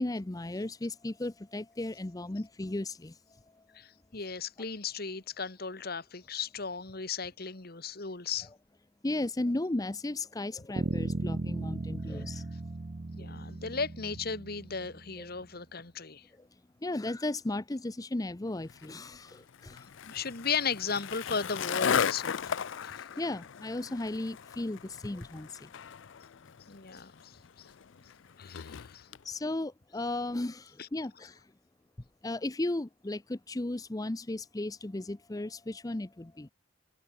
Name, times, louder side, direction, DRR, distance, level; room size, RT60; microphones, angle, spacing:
voice 1, 0.0-3.2 9.0-12.4 15.2-15.3 16.8-19.9 22.4-22.5 23.2-25.6 29.2-31.4 32.2-36.5, left 2 dB, 20° left, 0.6 m, -35 dB
voice 2, 3.7-8.5 12.1-12.2 13.1-16.3 20.0-23.0 26.7-27.7 28.4-29.1 30.8-30.9, left 5 dB, 50° left, 1.7 m, -36 dB
Bass guitar, 10.8-15.2, right 2 dB, 35° right, 0.6 m, -36 dB
Skateboard, 18.7-29.2, left 7 dB, 70° left, 0.5 m, -36 dB
head